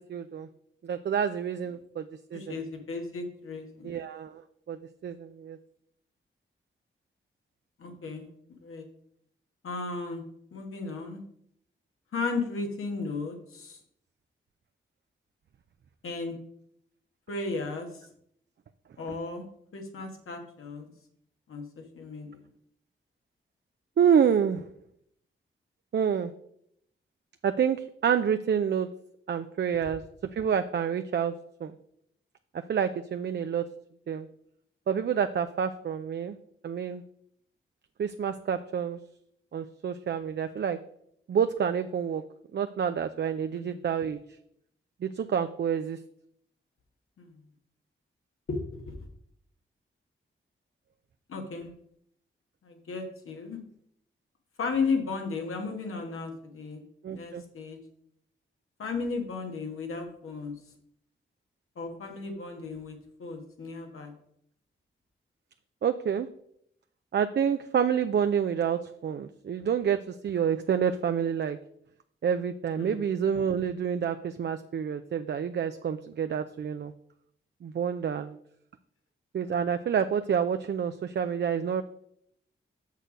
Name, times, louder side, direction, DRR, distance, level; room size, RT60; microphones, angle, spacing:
voice 1, 0.1-0.5 0.8-2.1 2.3-2.6 3.8-4.4 4.7-4.8 5.0-5.6 24.0-24.6 25.9-26.3 27.4-28.9 29.3-30.0 30.3-31.3 31.6-31.7 32.7-33.6 34.1-34.3 34.9-36.4 36.6-37.0 38.0-39.0 39.5-40.8 41.3-42.2 42.5-44.2 45.0-46.0 57.0-57.4 65.8-66.3 67.1-71.6 72.2-76.9 77.6-78.4 79.3-81.8, right 7 dB, 55° right, 8 dB, 0.5 m, -28 dB
voice 2, 2.3-3.9 7.8-8.3 8.6-8.9 9.6-10.2 10.5-11.2 12.1-13.8 16.0-16.3 17.3-17.9 19.0-19.5 19.7-20.9 21.5-22.4 43.5-43.8 47.2-47.4 48.5-48.9 51.3-51.7 52.6-53.6 54.6-56.8 57.1-57.8 58.8-60.5 61.7-64.1 72.8-73.1, left 4 dB, 80° left, 3 dB, 1.5 m, -35 dB
6.5 x 6.5 x 5.0 m, 0.71 s
cardioid pair, 45°, 21 cm